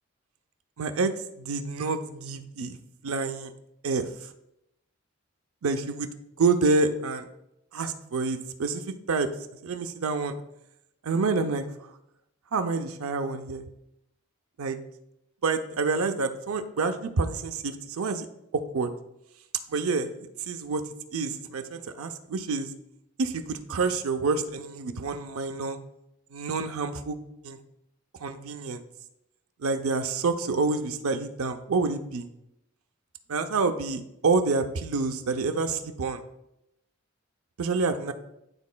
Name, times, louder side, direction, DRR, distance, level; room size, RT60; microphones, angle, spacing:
voice 1, 0.8-2.8 3.0-3.5 3.8-4.1 5.6-6.1 6.4-7.3 7.7-9.3 9.6-10.4 11.0-11.6 12.5-13.7 14.6-14.8 15.4-18.3 18.5-18.9 19.7-20.1 20.5-20.8 21.1-22.7 23.2-25.8 26.3-27.2 27.4-27.6 28.2-28.8 29.6-32.3 33.3-36.2 37.6-38.1, right 4 dB, 80° right, 8 dB, 0.5 m, -28 dB
10.5 x 4.0 x 2.2 m, 0.84 s
head